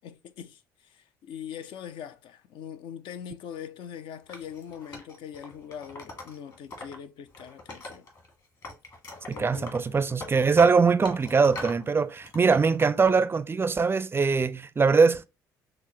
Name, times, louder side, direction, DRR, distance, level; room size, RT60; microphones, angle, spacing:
voice 1, 0.0-8.1 9.3-10.0, left 8 dB, 60° left, 0.4 m, -42 dB
Wood, 4.3-7.0 7.3-8.3 8.6-11.8 12.2-12.9, left 2 dB, 40° left, 1.6 m, -42 dB
voice 2, 9.4-15.3, right 5 dB, 25° right, 0.4 m, -22 dB
5.8 x 2.0 x 2.8 m
hypercardioid pair, 60°, 10 cm